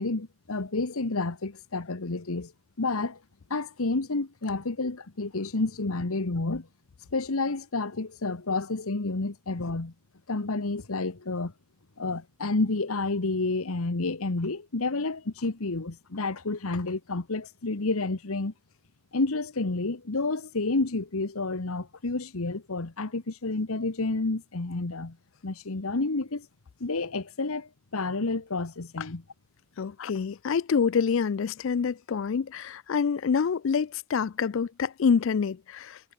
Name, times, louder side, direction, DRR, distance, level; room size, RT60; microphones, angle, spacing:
voice 1, 0.0-2.5 2.8-3.2 3.5-6.7 7.1-9.9 10.3-11.5 12.0-18.5 19.1-25.2 25.4-26.5 26.8-29.2, left 3 dB, 75° left, 1.2 m, -30 dB
voice 2, 29.8-36.0, left 6 dB, 60° left, 0.4 m, -26 dB
head